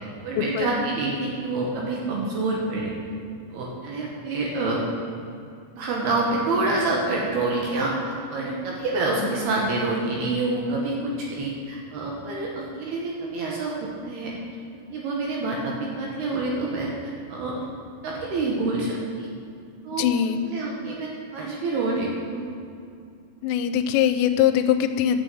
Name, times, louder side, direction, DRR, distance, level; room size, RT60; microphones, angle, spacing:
voice 1, 0.2-2.9 3.5-4.8 5.7-14.3 14.9-17.7 18.0-19.3 19.8-20.0 20.4-22.5, right 2 dB, 70° right, -3 dB, 2.6 m, -27 dB
voice 2, 20.0-20.4 23.4-25.2, left 9 dB, 85° left, 8 dB, 3.1 m, -22 dB
8.7 x 6.9 x 7.6 m, 2.4 s
omnidirectional pair, 5.7 m